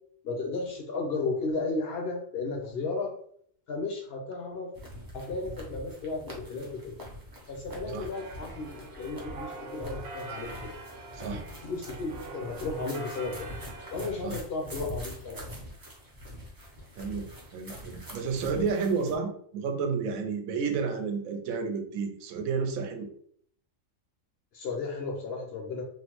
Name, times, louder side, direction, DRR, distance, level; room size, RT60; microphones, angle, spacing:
voice 1, 0.2-3.1 3.7-4.7 5.1-6.9 7.5-10.7 11.3-13.5 13.9-15.4 24.5-25.8, left 3 dB, 60° left, 1 dB, 0.7 m, -34 dB
sound 1, 4.7-19.2, equal, 35° right, 0.3 m, -44 dB
sound 2, 8.1-14.2, right 3 dB, 60° right, 0.7 m, -44 dB
voice 2, 11.1-11.5 14.2-14.4 17.0-23.1, right 5 dB, 85° right, 4 dB, 1.0 m, -31 dB
3.1 x 2.0 x 2.9 m, 0.63 s
omnidirectional pair, 1.4 m